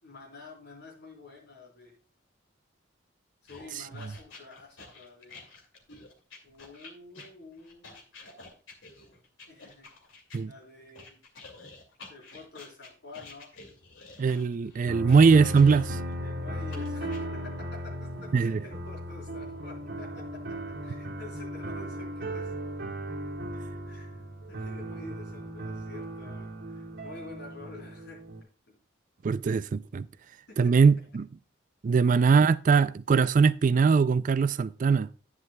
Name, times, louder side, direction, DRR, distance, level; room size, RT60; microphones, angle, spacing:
voice 1, 0.0-2.0 3.4-5.4 6.4-8.0 9.5-9.9 10.5-11.2 12.1-13.5 16.2-22.7 23.9-28.2 28.7-28.8 30.5-31.0 31.9-32.0, left 3 dB, 60° left, 3.9 m, -48 dB
sound 1, 3.5-10.4 10.9-16.1 16.7-17.2, left 3 dB, 85° left, 2.5 m, -49 dB
voice 2, 14.2-16.0 18.3-18.6 29.2-30.1 30.6-31.3 31.8-35.1, right 5 dB, 45° right, 0.4 m, -21 dB
sound 2, 14.9-28.4, right 1 dB, 60° right, 1.8 m, -37 dB
10.5 x 9.6 x 2.3 m
head